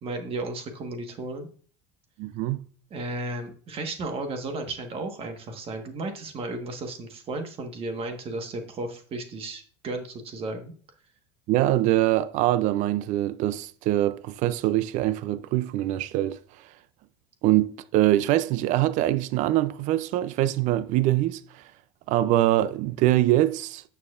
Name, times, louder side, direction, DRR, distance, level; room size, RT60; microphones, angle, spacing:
voice 1, 0.0-1.5 2.9-10.7, right 2 dB, 40° right, 1.4 m, -34 dB
voice 2, 2.2-2.6 11.5-16.4 17.4-21.6 22.1-23.8, right 14 dB, 55° right, 0.5 m, -23 dB
9.1 x 6.8 x 2.4 m
supercardioid pair, 115°, 15 cm